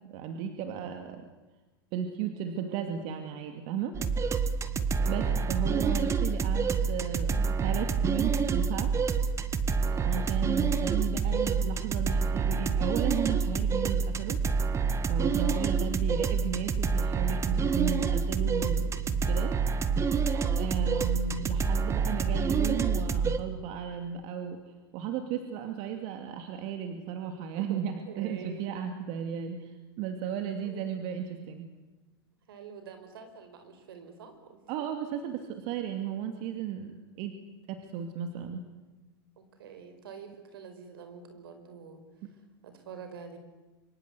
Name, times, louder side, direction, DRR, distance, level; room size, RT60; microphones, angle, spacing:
voice 1, 0.1-1.3 1.9-3.9 5.1-8.9 10.1-14.4 15.1-19.5 20.6-24.6 24.9-31.7 34.7-37.3 37.7-38.6, right 8 dB, 55° right, 6 dB, 2.6 m, -35 dB
voice 2, 2.5-3.2 4.8-5.4 9.9-10.3 15.4-15.8 20.3-20.7 27.6-28.8 30.6-30.9 32.5-34.6 39.4-42.0 42.6-43.4, right 6 dB, 75° right, 8 dB, 5.2 m, -46 dB
sound 1, 3.9-23.4, right 5 dB, 25° right, 1.8 m, -27 dB
25.5 x 24.5 x 8.4 m, 1.2 s
hypercardioid pair, 100°, 12 cm